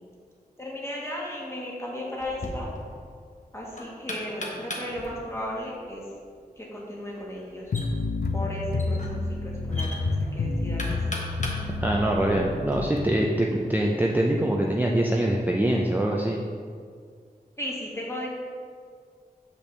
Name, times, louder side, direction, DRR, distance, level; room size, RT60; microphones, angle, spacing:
voice 1, 0.6-2.7 3.5-6.0 6.6-7.7 8.3-11.0 17.6-18.3, left 1 dB, 15° left, -4 dB, 1.6 m, -35 dB
Knock, 2.2-12.8, left 1 dB, 50° left, 1.1 m, -40 dB
sound 1, 7.7-13.0, left 3 dB, 75° left, 0.6 m, -29 dB
voice 2, 11.8-16.4, right 1 dB, 10° right, -2 dB, 0.5 m, -24 dB
6.9 x 5.3 x 3.3 m, 2.1 s
wide cardioid pair, 65°, 16 cm